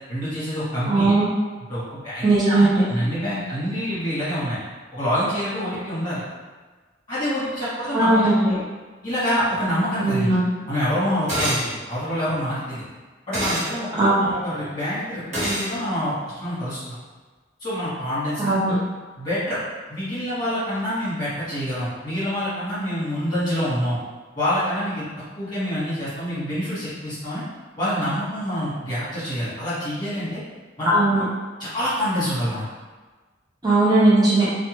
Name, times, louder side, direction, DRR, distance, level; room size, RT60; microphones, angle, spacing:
voice 1, 0.1-1.1 1.7-4.6 4.9-6.2 7.1-8.3 9.0-10.3 10.7-12.8 13.3-13.9 14.2-17.0 17.6-18.6 19.2-19.6 19.9-24.0 24.3-25.0 25.4-27.4 27.8-30.4 30.8-31.0 31.6-32.6, equal, 25° left, -11 dB, 1.3 m, -26 dB
voice 2, 0.9-1.2 2.2-2.8 7.9-8.6 10.0-10.4 14.0-14.3 18.4-18.7 30.9-31.2 33.6-34.4, right 2 dB, 20° right, -10 dB, 0.7 m, -18 dB
sound 1, 11.3-11.7 13.3-13.7 15.3-15.7, right 1 dB, 40° right, 1.0 m, -25 dB
2.7 x 2.2 x 3.0 m, 1.3 s
head